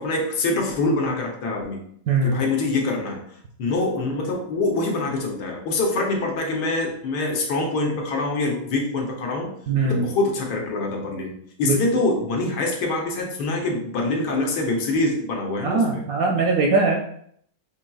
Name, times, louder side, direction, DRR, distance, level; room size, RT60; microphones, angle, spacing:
voice 1, 0.0-1.8 2.2-3.2 3.6-9.5 9.8-16.0, left 2 dB, 75° left, 1 dB, 1.3 m, -25 dB
voice 2, 2.1-2.4 9.7-10.1 11.6-11.8 15.6-17.0, right 3 dB, 70° right, 0 dB, 0.9 m, -21 dB
5.5 x 2.8 x 2.2 m, 0.66 s
omnidirectional pair, 1.9 m